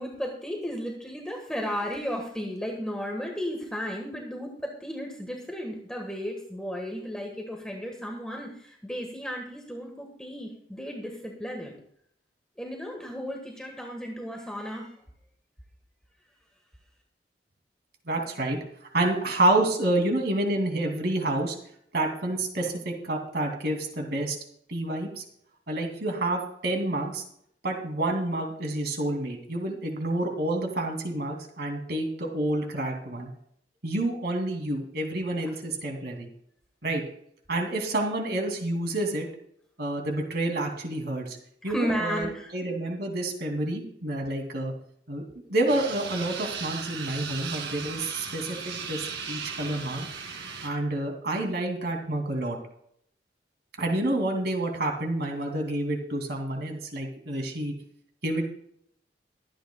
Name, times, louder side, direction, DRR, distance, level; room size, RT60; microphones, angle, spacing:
voice 1, 0.0-11.7 12.6-14.9 35.5-35.6 41.6-42.5, equal, 5° left, 1 dB, 1.5 m, -34 dB
voice 2, 18.1-18.6 18.9-21.5 21.9-24.4 24.7-25.2 25.7-27.2 27.6-33.3 33.8-36.3 36.8-37.0 37.5-39.3 39.8-41.4 41.6-42.2 42.5-44.7 45.1-45.2 45.5-50.1 50.6-52.6 53.8-57.7 58.2-58.5, right 1 dB, 65° right, 2 dB, 2.7 m, -28 dB
sound 1, 45.7-50.7, right 5 dB, 80° right, 2.3 m, -37 dB
22.5 x 9.2 x 2.3 m, 0.69 s
head